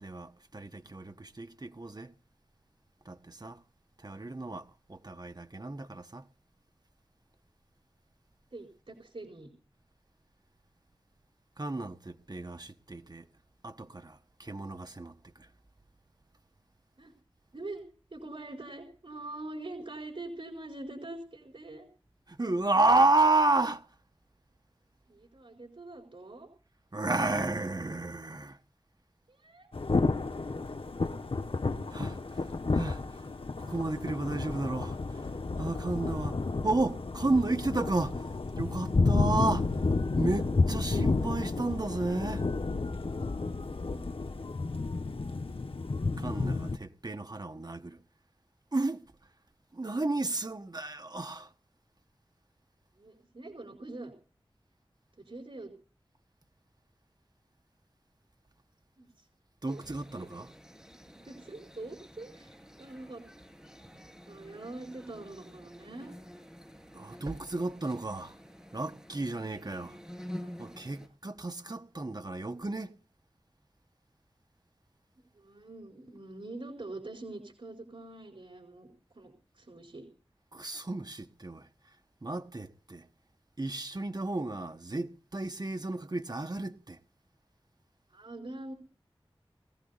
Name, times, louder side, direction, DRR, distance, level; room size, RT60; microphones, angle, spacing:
voice 1, 0.0-2.1 3.0-3.6 4.0-6.2 11.6-13.2 13.6-15.5 22.3-23.8 26.9-28.6 31.9-32.2 32.7-33.0 33.6-35.2 35.6-38.3 38.5-39.7 40.2-42.4 46.2-48.0 48.7-49.0 49.7-51.5 59.6-60.5 66.9-68.3 68.7-70.0 70.6-72.9 80.5-81.7 82.2-83.1 83.6-87.0, right 2 dB, 45° right, 1.4 m, -32 dB
voice 2, 8.5-9.5 17.0-17.1 17.5-17.8 18.1-21.9 25.1-26.5 29.3-29.7 43.9-44.1 53.0-54.1 55.2-55.7 59.0-59.3 59.7-59.8 61.1-63.2 64.2-66.1 75.3-78.9 79.1-80.1 88.1-88.7, right 2 dB, 70° right, 4.3 m, -44 dB
Thunder / Rain, 29.7-46.8, left 3 dB, 75° left, 1.1 m, -31 dB
sound 1, 59.7-71.1, equal, 5° right, 7.7 m, -49 dB
22.0 x 15.0 x 4.1 m
wide cardioid pair, 60°, 10 cm